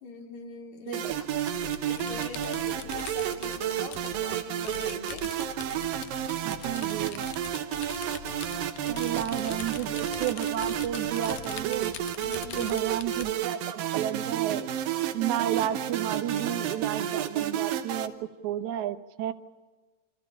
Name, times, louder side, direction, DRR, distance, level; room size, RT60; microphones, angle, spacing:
voice 1, 0.0-1.3 1.9-5.3 8.8-9.0 9.5-9.8 12.2-12.8, left 5 dB, 60° left, 2 dB, 3.3 m, -43 dB
sound 1, 0.9-18.1, right 10 dB, 85° right, 2.8 m, -31 dB
sound 2, 1.0-13.3, left 11 dB, 85° left, 1.4 m, -44 dB
voice 2, 6.5-7.3 8.9-12.0 12.6-14.7 15.1-18.1 18.4-19.3, right 11 dB, 70° right, 9 dB, 2.1 m, -32 dB
27.0 x 14.5 x 8.6 m, 1.4 s
omnidirectional pair, 4.0 m